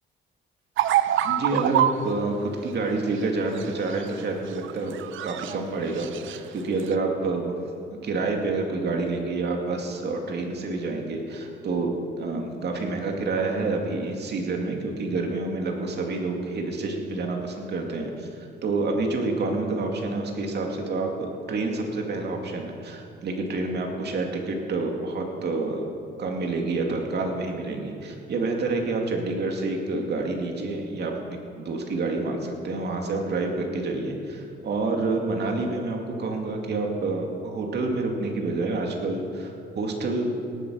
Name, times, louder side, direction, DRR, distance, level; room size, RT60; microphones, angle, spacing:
sound 1, 0.8-2.1 3.4-4.2 4.5-5.6 5.9-6.4 6.8-6.9, right 11 dB, 75° right, 0.6 m, -25 dB
voice 1, 1.2-7.6 8.0-18.3 18.6-25.8 26.2-40.3, right 3 dB, 60° right, 2 dB, 2.4 m, -28 dB
17.5 x 8.7 x 6.3 m, 2.5 s
cardioid pair, 90°, 20 cm